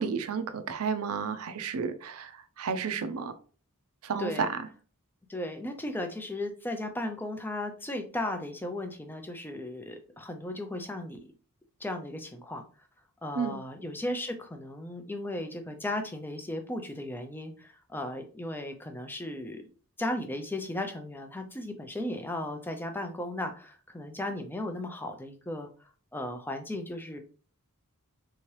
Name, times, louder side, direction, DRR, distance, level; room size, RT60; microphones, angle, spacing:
voice 1, 0.0-2.3 2.6-3.3 4.0-4.5 13.3-13.6, right 6 dB, 75° right, 0.5 m, -31 dB
voice 2, 5.3-11.2 11.8-12.6 13.2-19.6 20.0-25.7 26.1-27.2, left 1 dB, 10° left, 0.4 m, -36 dB
3.5 x 2.8 x 3.2 m
head